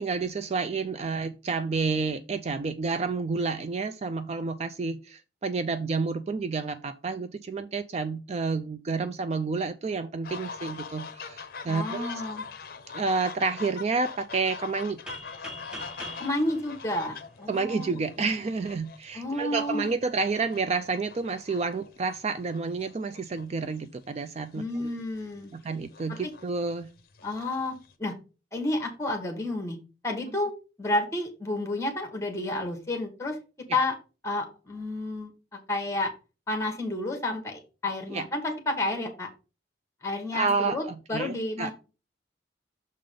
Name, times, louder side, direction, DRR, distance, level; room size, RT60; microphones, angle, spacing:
voice 1, 0.0-12.1 12.9-15.0 17.5-25.0 25.5-26.9 33.7-33.8 38.1-38.2 40.3-41.7, right 4 dB, 35° right, 0.4 m, -30 dB
sound 1, 10.2-24.0 24.7-24.9 25.2-27.9, left 5 dB, 55° left, 0.7 m, -43 dB
voice 2, 11.7-12.4 16.2-18.3 19.1-19.9 24.5-25.5 27.2-27.7 28.0-28.1 28.5-29.8 30.0-30.5 30.8-33.4 33.7-33.9 34.2-35.3 35.7-36.1 36.5-39.3 40.0-41.7, left 2 dB, 15° left, 1.5 m, -30 dB
sound 2, 15.1-17.8, equal, 5° right, 1.0 m, -43 dB
6.5 x 3.9 x 5.1 m
head